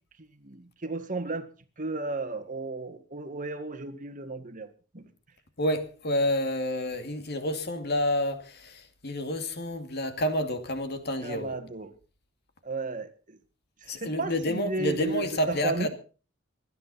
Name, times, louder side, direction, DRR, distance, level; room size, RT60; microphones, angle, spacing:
voice 1, 0.4-1.5 1.8-5.0 11.2-11.9 12.6-13.4 13.8-15.9, right 3 dB, 40° right, 1.8 m, -34 dB
voice 2, 5.6-11.5 13.9-15.9, left 1 dB, 55° left, 2.4 m, -29 dB
25.5 x 10.0 x 4.2 m
head